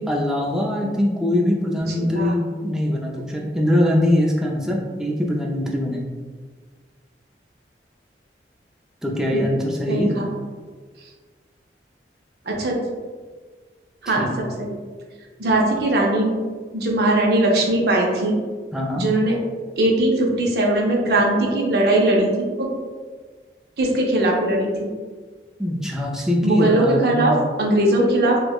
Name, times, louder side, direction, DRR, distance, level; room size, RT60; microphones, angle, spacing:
voice 1, 0.0-6.0 9.0-10.1 14.1-14.3 18.7-19.1 25.6-27.3, left 1 dB, 5° right, -3 dB, 0.4 m, -22 dB
voice 2, 1.9-2.3 9.3-9.5 9.9-10.3 12.5-12.8 14.0-14.3 14.6-14.7 15.4-16.3 16.7-18.4 19.0-19.4 19.8-22.7 23.8-24.9 26.4-28.4, right 1 dB, 60° right, -1 dB, 0.6 m, -20 dB
4.4 x 2.1 x 2.3 m, 1.5 s
head